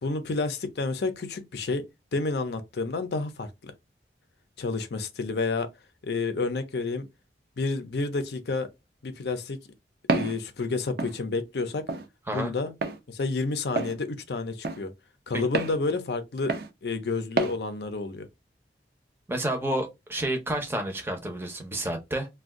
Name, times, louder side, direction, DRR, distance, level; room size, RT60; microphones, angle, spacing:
voice 1, 0.0-1.8 2.1-3.7 4.6-5.7 6.0-7.1 7.6-8.7 9.0-9.6 10.1-11.9 12.3-12.7 13.1-14.9 15.3-18.3, left 3 dB, 70° left, 0.5 m, -30 dB
Walk footsteps, 10.1-10.4 11.0-11.2 11.9-12.1 12.8-13.0 13.8-14.0 14.6-14.8 15.5-15.8 16.5-16.7 17.4-17.6, right 3 dB, 55° right, 0.4 m, -27 dB
voice 2, 19.3-22.3, right 1 dB, 15° right, 0.6 m, -30 dB
2.5 x 2.2 x 3.5 m
head